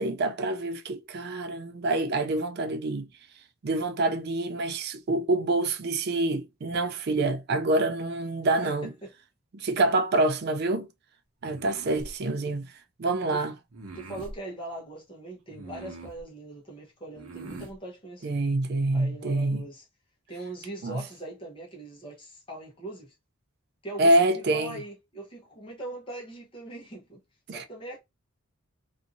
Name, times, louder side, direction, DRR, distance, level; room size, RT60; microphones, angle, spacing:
voice 1, 0.0-3.1 3.6-8.9 9.5-10.9 11.4-12.7 13.0-13.5 18.2-19.6 20.8-21.0 24.0-24.8 27.5-27.6, right 2 dB, 45° right, 0.4 m, -26 dB
voice 2, 8.6-9.1 13.3-13.4 13.9-18.4 18.9-19.9 20.3-23.1 23.8-27.2 27.5-28.0, right 2 dB, 25° left, 0.8 m, -41 dB
sound 1, 11.4-12.1 13.7-14.4 15.5-16.2 17.1-17.7, right 2 dB, 75° right, 0.8 m, -42 dB
2.6 x 2.5 x 2.6 m
head